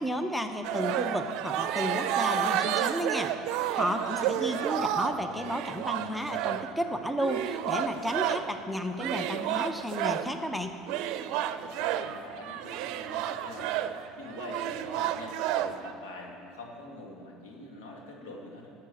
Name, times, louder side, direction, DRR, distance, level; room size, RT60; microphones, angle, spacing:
voice 1, 0.0-3.3 3.7-10.8, equal, 5° left, 6 dB, 0.9 m, -32 dB
sound 1, 0.6-8.6 9.0-10.3 10.9-15.9, right 10 dB, 65° right, 0.5 m, -31 dB
voice 2, 3.7-4.8 11.6-18.7, left 2 dB, 85° left, -1 dB, 2.2 m, -45 dB
11.5 x 7.5 x 7.2 m, 2.6 s
supercardioid pair, 95°, 0 cm